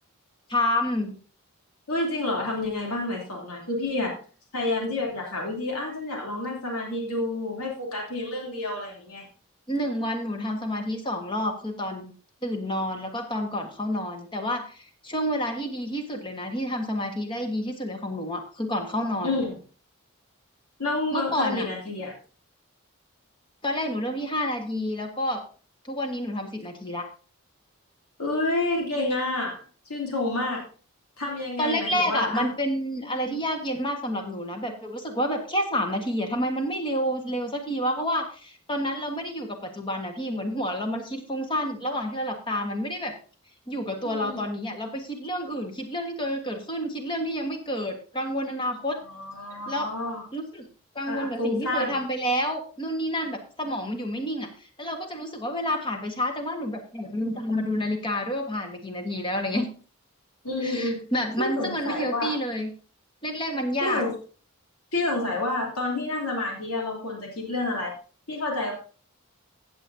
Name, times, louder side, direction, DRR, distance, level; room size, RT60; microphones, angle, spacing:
voice 1, 0.5-1.1 9.7-12.1 12.4-19.4 21.1-21.7 23.6-25.4 25.8-27.1 31.6-43.1 43.7-49.0 49.7-49.9 50.3-50.7 50.9-54.5 54.8-59.7 60.6-62.7 63.2-64.0, equal, 20° left, 4 dB, 1.5 m, -29 dB
voice 2, 1.9-4.1 4.5-9.3 19.2-19.5 20.8-22.1 28.2-30.6 31.2-32.5 33.2-33.4 44.0-44.4 49.1-50.2 51.1-52.0 60.4-61.0 61.4-62.3 63.8-64.1 64.9-67.9 68.3-68.7, left 2 dB, 80° left, -1 dB, 3.1 m, -29 dB
16.0 x 7.7 x 2.8 m, 0.38 s
head